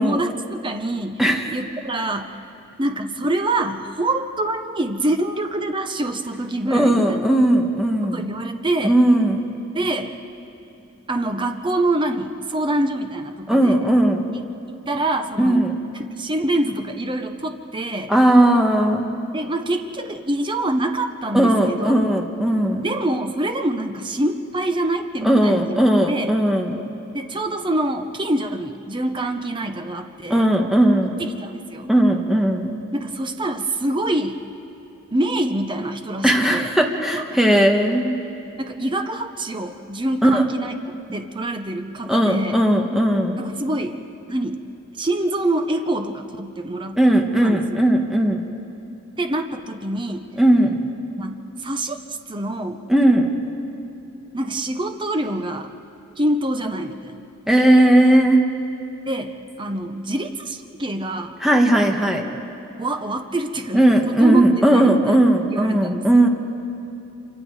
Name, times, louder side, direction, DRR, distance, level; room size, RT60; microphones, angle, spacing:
voice 1, 0.0-1.2 1.5-2.4 2.8-7.3 8.0-9.0 9.7-10.2 11.1-13.8 14.3-15.6 16.0-18.1 19.3-21.9 22.8-25.8 26.1-26.3 27.1-30.5 31.4-31.9 32.9-34.4 35.1-36.7 37.1-37.2 38.6-40.7 41.1-42.6 43.4-44.0 44.3-44.6 45.0-47.0 47.4-47.6 49.2-50.2 51.2-52.0 52.3-52.8 54.3-55.7 56.2-57.3 59.1-61.3 62.8-65.2 65.5-66.1, right 1 dB, 25° right, 6 dB, 0.9 m, -25 dB
voice 2, 1.2-1.5 6.7-8.3 8.8-9.4 13.5-14.3 15.4-15.8 18.1-19.1 21.3-22.8 25.2-26.8 30.3-31.2 31.9-32.7 36.2-38.1 40.2-40.4 42.1-43.4 47.0-48.5 50.4-50.8 52.9-53.3 57.5-58.4 61.4-62.3 63.7-66.3, right 1 dB, ahead, 1 dB, 1.5 m, -17 dB
28.0 x 24.5 x 4.9 m, 2.8 s
head